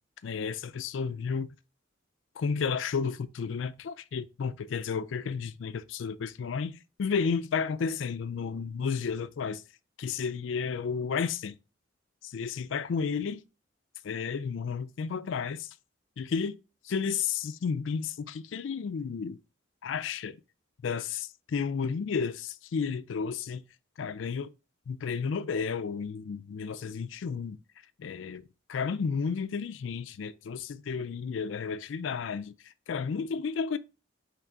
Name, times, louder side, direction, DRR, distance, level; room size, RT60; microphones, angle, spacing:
voice 1, 0.2-1.5 2.4-9.6 10.0-11.6 12.2-13.4 14.0-15.7 16.2-16.6 16.8-19.4 19.8-20.4 20.8-23.6 24.0-24.5 24.9-27.6 28.0-33.8, left 6 dB, 80° left, 0.4 m, -32 dB
4.6 x 3.1 x 3.7 m
head